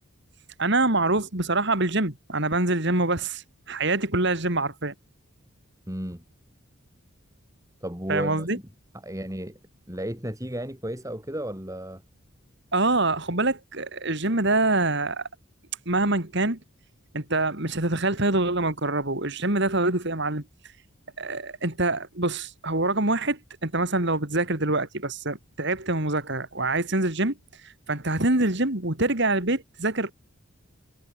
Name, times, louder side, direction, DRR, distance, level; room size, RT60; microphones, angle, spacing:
voice 1, 0.6-3.4 3.7-4.9 8.1-8.6 12.7-15.2 15.9-16.6 17.1-20.4 21.2-27.3 27.9-30.1, right 2 dB, 55° right, 3.4 m, -25 dB
voice 2, 5.9-6.2 7.8-8.5 9.0-9.6 9.9-12.0, right 1 dB, 15° right, 3.8 m, -33 dB
head